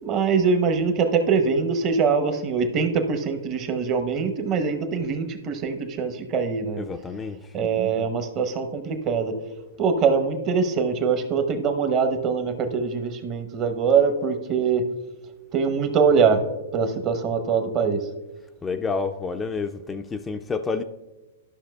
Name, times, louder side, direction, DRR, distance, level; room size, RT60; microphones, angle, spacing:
voice 1, 0.0-6.8 7.5-9.3 9.8-14.8 15.5-16.4 16.7-18.1, right 5 dB, 35° right, 0.8 m, -23 dB
voice 2, 6.8-7.4 18.6-20.8, left 4 dB, 15° left, 0.3 m, -29 dB
12.0 x 5.9 x 2.3 m
hypercardioid pair, 120°, 0 cm